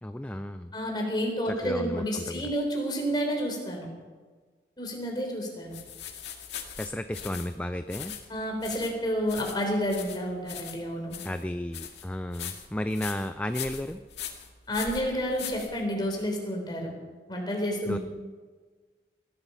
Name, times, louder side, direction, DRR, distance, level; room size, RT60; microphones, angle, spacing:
voice 1, 0.0-0.7 1.4-2.5 6.8-8.2 11.2-14.0 17.8-18.0, left 1 dB, 10° left, 9 dB, 0.4 m, -33 dB
voice 2, 0.7-3.9 4.8-5.8 8.3-11.2 14.7-17.0 17.3-18.0, equal, 25° left, 1 dB, 3.8 m, -30 dB
sound 1, 5.7-16.2, left 9 dB, 80° left, 2.1 m, -41 dB
20.0 x 12.5 x 5.7 m, 1.4 s
head